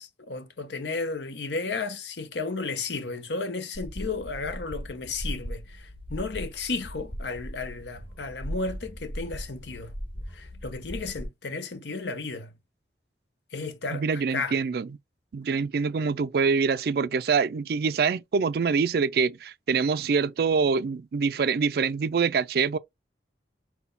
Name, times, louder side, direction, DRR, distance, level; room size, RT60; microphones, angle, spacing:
voice 1, 0.0-10.0 10.3-12.5 13.5-14.6, left 3 dB, 75° left, 0.9 m, -33 dB
sound 1, 3.7-11.3, equal, 30° left, 1.3 m, -38 dB
voice 2, 13.9-14.9 15.3-22.8, right 5 dB, 60° right, 0.4 m, -25 dB
5.7 x 2.2 x 3.9 m
head